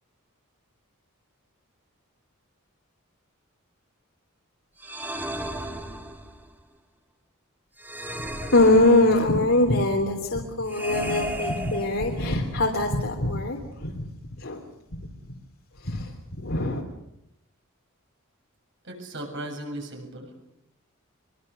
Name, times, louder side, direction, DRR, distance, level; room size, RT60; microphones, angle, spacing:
sound 1, 4.8-6.5 7.8-9.4 10.7-12.5, right 1 dB, 10° right, 2.3 m, -34 dB
voice 1, 8.4-14.1 14.4-14.7 15.8-16.1 16.4-16.8, left 2 dB, 65° left, 0 dB, 3.2 m, -22 dB
voice 2, 18.8-20.3, right 1 dB, 60° right, 3 dB, 7.4 m, -36 dB
25.0 x 23.0 x 6.9 m, 0.81 s
head